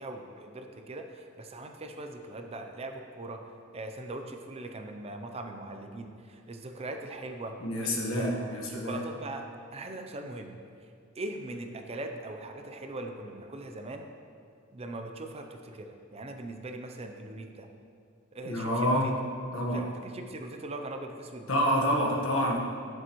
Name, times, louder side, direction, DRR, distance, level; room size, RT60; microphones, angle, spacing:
voice 1, 0.0-3.4 3.7-7.5 7.8-9.5 9.7-10.6 11.2-14.1 14.7-17.7 18.3-19.1 19.7-21.5, right 2 dB, 30° right, 5 dB, 0.5 m, -40 dB
voice 2, 7.6-9.0 18.4-19.1 19.5-19.8 21.5-22.6, equal, 70° left, -1 dB, 1.3 m, -27 dB
10.5 x 6.7 x 3.1 m, 2.4 s
head